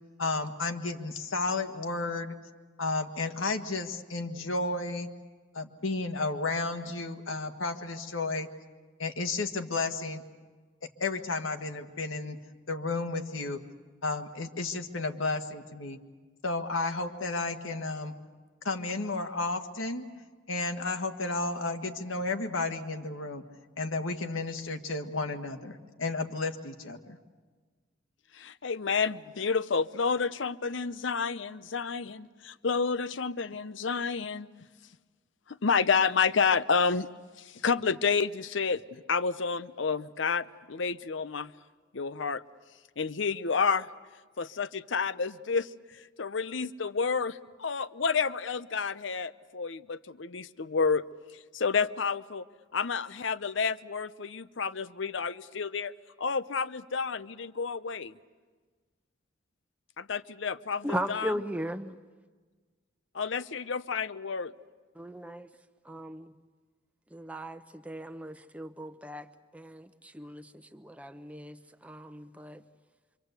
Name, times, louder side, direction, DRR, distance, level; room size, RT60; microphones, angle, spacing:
voice 1, 0.2-2.4 2.8-5.1 5.5-8.5 9.0-10.2 11.0-12.4 12.7-13.6 14.0-16.0 16.4-18.1 18.7-20.0 20.5-23.4 23.8-27.2, left 3 dB, 85° left, 5 dB, 1.6 m, -32 dB
voice 2, 28.3-34.5 35.5-37.1 37.4-41.5 41.9-42.4 43.0-43.9 44.4-51.0 51.5-52.4 52.7-55.9 56.2-58.1 60.0-61.3 63.1-64.5, left 5 dB, 70° left, 15 dB, 0.7 m, -30 dB
voice 3, 60.8-62.0 64.9-65.5 65.8-66.3 67.1-69.3 69.5-72.6, equal, 5° right, 9 dB, 0.8 m, -37 dB
26.0 x 25.0 x 8.1 m, 1.4 s
head